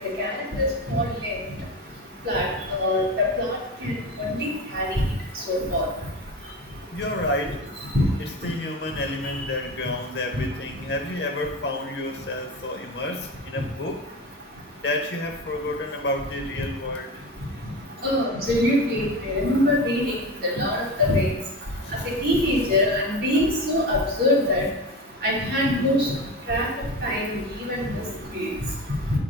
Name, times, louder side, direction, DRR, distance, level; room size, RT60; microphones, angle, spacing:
voice 1, 0.2-1.4 2.2-3.5 3.8-3.9 4.2-4.9 5.5-5.8 7.9-8.0 18.0-20.1 20.4-21.3 22.0-24.7 25.2-26.1 26.5-26.7 27.0-27.8 28.3-28.5, left 1 dB, 60° right, -5 dB, 2.5 m, -23 dB
voice 2, 6.9-7.7 8.2-14.1 14.8-17.2 21.7-22.7 27.8-28.4, left 1 dB, 65° left, 4 dB, 0.8 m, -30 dB
9.4 x 4.9 x 2.2 m, 0.83 s
head